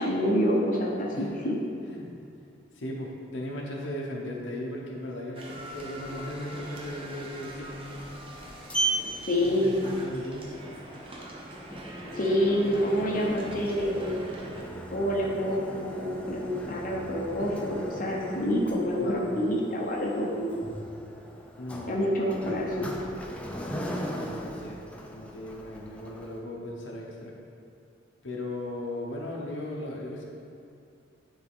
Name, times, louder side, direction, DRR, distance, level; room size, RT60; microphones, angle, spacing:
voice 1, 0.0-1.6 9.3-9.8 12.1-14.2 14.9-20.6 21.9-22.9, equal, 45° left, -3 dB, 0.8 m, -27 dB
voice 2, 2.7-8.1 9.4-10.5 19.0-19.3 21.6-22.1 24.1-24.8 25.1-27.3 28.2-30.2, left 1 dB, 85° left, -2 dB, 1.0 m, -37 dB
sound 1, 5.3-14.6, right 1 dB, 30° right, 0.7 m, -43 dB
Sliding door, 8.1-26.4, right 1 dB, 5° left, 0.5 m, -38 dB
9.8 x 3.6 x 3.6 m, 2.5 s
head